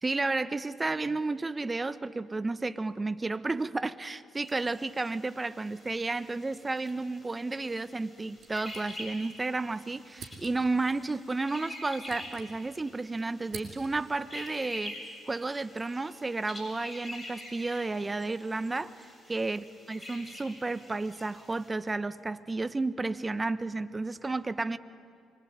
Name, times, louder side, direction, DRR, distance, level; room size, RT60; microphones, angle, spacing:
voice 1, 0.0-24.8, right 3 dB, 25° right, 1.2 m, -32 dB
sound 1, 4.4-21.7, left 1 dB, 20° left, 7.6 m, -47 dB
sound 2, 8.4-9.4 9.6-9.7 10.1-10.8 11.6-12.9 13.2-14.2, right 6 dB, 60° right, 5.7 m, -48 dB
25.5 x 24.0 x 9.2 m
hypercardioid pair, 50°, 0 cm